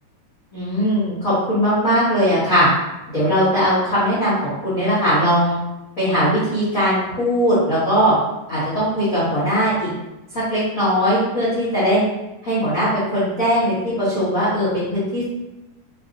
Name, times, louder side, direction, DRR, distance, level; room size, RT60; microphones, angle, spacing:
voice 1, 0.5-2.7 3.1-4.3 4.6-5.6 6.0-8.1 8.5-9.9 10.3-12.0 12.4-15.3, equal, 50° left, -12 dB, 1.0 m, -19 dB
5.3 x 2.7 x 2.5 m, 0.99 s
omnidirectional pair, 3.8 m